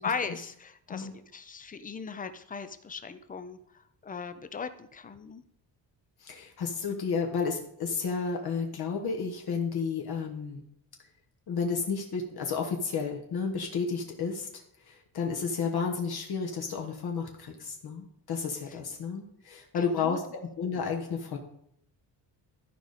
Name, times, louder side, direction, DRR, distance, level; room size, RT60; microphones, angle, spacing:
voice 1, 0.0-3.6 4.0-5.4 19.8-20.2, left 5 dB, 20° left, 11 dB, 0.4 m, -38 dB
voice 2, 6.2-10.6 11.5-21.4, left 5 dB, 55° left, 2 dB, 1.3 m, -32 dB
14.0 x 5.0 x 4.1 m, 0.72 s
cardioid pair, 175°, 45 cm